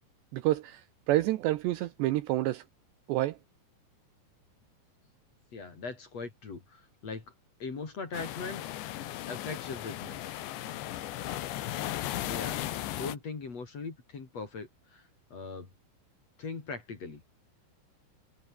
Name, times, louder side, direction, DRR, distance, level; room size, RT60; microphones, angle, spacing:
voice 1, 0.3-0.8 1.1-2.6 3.1-3.4, right 16 dB, 75° right, 2.8 m, -28 dB
voice 2, 5.5-7.3 7.6-8.7 9.3-10.2 12.2-15.7 16.4-17.2, left 4 dB, 35° left, 4.3 m, -40 dB
sound 1, 8.1-13.2, left 13 dB, 70° left, 3.6 m, -36 dB
omnidirectional pair, 5.6 m